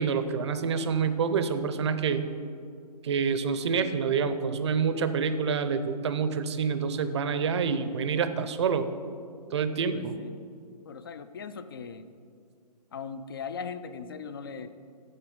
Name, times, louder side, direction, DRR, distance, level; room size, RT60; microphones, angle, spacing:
voice 1, 0.0-2.3 3.0-8.9 9.5-10.2, right 6 dB, 40° right, 11 dB, 0.6 m, -27 dB
voice 2, 9.9-10.4 10.8-12.1 12.9-14.7, left 5 dB, 35° left, 12 dB, 0.4 m, -39 dB
7.9 x 7.0 x 5.2 m, 2.3 s
hypercardioid pair, 160°, 21 cm